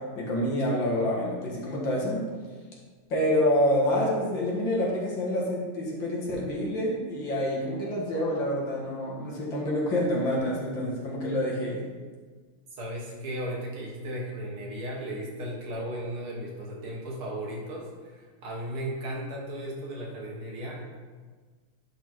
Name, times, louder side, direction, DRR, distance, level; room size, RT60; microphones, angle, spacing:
voice 1, 0.2-2.2 3.1-11.8, left 1 dB, 65° left, -4 dB, 2.4 m, -27 dB
voice 2, 12.7-20.9, right 1 dB, 85° right, -3 dB, 2.5 m, -36 dB
11.0 x 4.0 x 4.5 m, 1.5 s
omnidirectional pair, 2.3 m